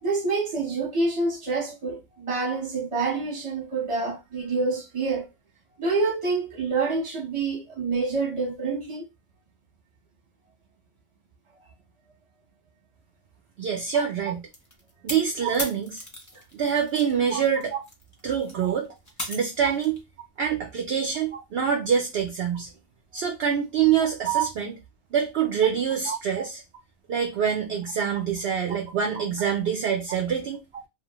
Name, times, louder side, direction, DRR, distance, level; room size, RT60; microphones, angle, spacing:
voice 1, 0.0-5.3 5.8-9.0 13.9-14.0 15.4-15.5 17.3-17.4 21.3-21.4 24.2-24.4 26.1-26.2, right 4 dB, 25° right, 0.8 m, -27 dB
voice 2, 13.6-14.4 15.0-16.0 16.5-17.7 18.2-18.9 19.3-20.0 20.4-22.7 23.1-24.7 25.1-26.6 27.1-30.6, right 7 dB, 65° right, 0.6 m, -25 dB
sound 1, 14.5-17.1 17.5-20.0, left 1 dB, 25° left, 0.4 m, -37 dB
2.8 x 2.1 x 2.9 m
omnidirectional pair, 1.5 m